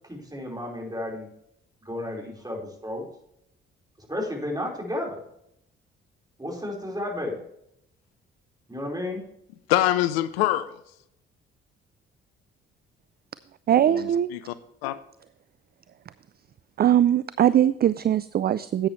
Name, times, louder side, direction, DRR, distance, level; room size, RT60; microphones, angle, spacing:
voice 1, 0.0-1.3 1.8-3.0 4.0-5.2 6.4-7.4 8.7-9.2, left 1 dB, 15° right, 0 dB, 4.5 m, -32 dB
voice 2, 9.7-10.8 13.8-14.5 14.8-15.0, left 14 dB, 85° left, 15 dB, 0.5 m, -25 dB
voice 3, 13.7-14.3 16.8-18.9, right 10 dB, 35° right, 16 dB, 0.4 m, -21 dB
11.0 x 8.6 x 3.1 m, 0.73 s
hypercardioid pair, 45°, 30 cm